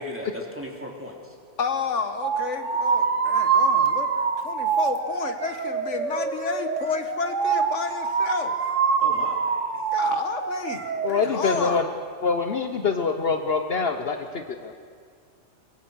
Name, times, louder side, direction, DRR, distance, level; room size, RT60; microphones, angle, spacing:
voice 1, 0.0-1.3 9.0-9.8, left 1 dB, 10° right, 0 dB, 2.9 m, -37 dB
voice 2, 1.6-8.6 9.9-11.8, left 5 dB, 80° left, 8 dB, 1.6 m, -31 dB
sound 1, 2.2-11.1, right 6 dB, 85° right, 1.7 m, -25 dB
voice 3, 11.0-11.9 12.2-14.7, left 4 dB, 55° left, 6 dB, 1.2 m, -25 dB
24.0 x 21.5 x 6.4 m, 2.1 s
omnidirectional pair, 1.2 m